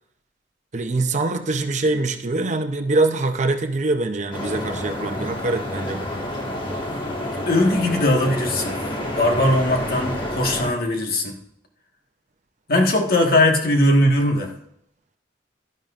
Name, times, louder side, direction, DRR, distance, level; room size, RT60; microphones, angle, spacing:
voice 1, 0.7-6.1, right 2 dB, 40° right, 7 dB, 0.7 m, -23 dB
sound 1, 4.3-10.7, left 1 dB, 25° left, 1.7 m, -29 dB
voice 2, 7.3-8.8 9.2-11.4 12.7-14.5, left 1 dB, 50° left, 2 dB, 1.5 m, -19 dB
12.0 x 10.5 x 2.5 m, 0.74 s
head